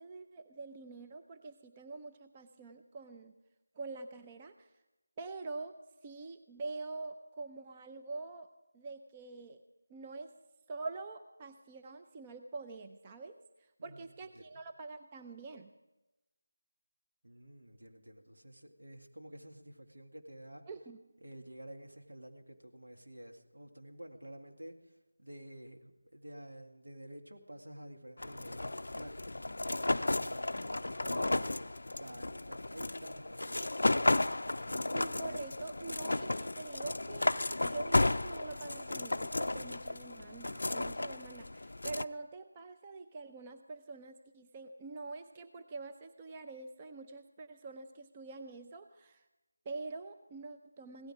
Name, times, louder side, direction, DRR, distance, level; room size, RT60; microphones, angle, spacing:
voice 1, 0.0-3.3 3.7-4.7 5.2-5.8 6.0-8.5 8.7-9.6 9.9-10.3 10.7-15.7 20.7-21.0 34.6-37.3 37.6-49.2 49.7-51.1, right 3 dB, 20° right, 6 dB, 0.5 m, -45 dB
voice 2, 17.2-20.6 21.2-33.7, right 1 dB, 70° right, 3 dB, 2.1 m, -50 dB
sound 1, 28.2-42.0, left 2 dB, 65° left, 0.4 m, -33 dB
17.0 x 13.5 x 5.0 m, 1.0 s
figure-of-eight pair, 165°, 0 cm